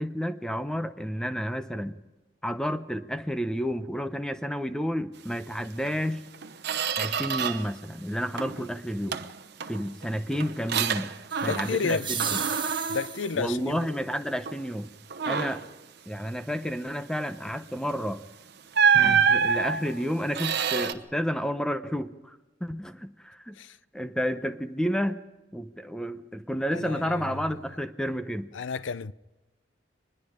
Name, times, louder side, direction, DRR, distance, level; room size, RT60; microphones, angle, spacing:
voice 1, 0.0-2.0 2.4-6.3 7.0-9.2 9.7-11.1 11.4-12.4 13.4-14.9 15.3-15.7 16.1-18.2 18.9-23.6 23.9-25.2 25.5-28.5, equal, 5° left, 0.8 m, -31 dB
Squeak, 5.8-6.0 6.3-7.8 8.1-8.7 9.1-11.9 12.2-14.0 14.5-14.7 15.1-15.7 17.8-18.0 18.7-20.9, right 7 dB, 65° right, 1.0 m, -27 dB
sound 1, 11.3-13.5, right 7 dB, 25° right, 1.3 m, -34 dB
voice 2, 11.4-12.1 12.9-13.9 23.6-23.8 26.7-27.4 28.5-29.1, left 5 dB, 85° left, 0.6 m, -31 dB
24.5 x 20.5 x 5.1 m
head